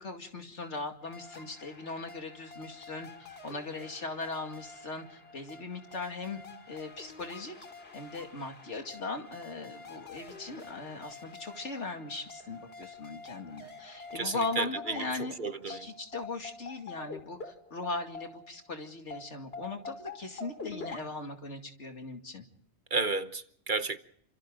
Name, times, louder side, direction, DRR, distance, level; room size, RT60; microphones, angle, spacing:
voice 1, 0.0-6.4 6.7-7.5 7.9-15.3 15.7-22.4, left 3 dB, 75° left, 2.7 m, -39 dB
sound 1, 1.0-18.7 19.1-21.0, left 3 dB, 60° left, 2.6 m, -47 dB
voice 2, 14.1-15.1 15.4-15.9 22.9-24.0, right 3 dB, 45° right, 1.1 m, -32 dB
28.5 x 26.5 x 3.8 m
omnidirectional pair, 1.2 m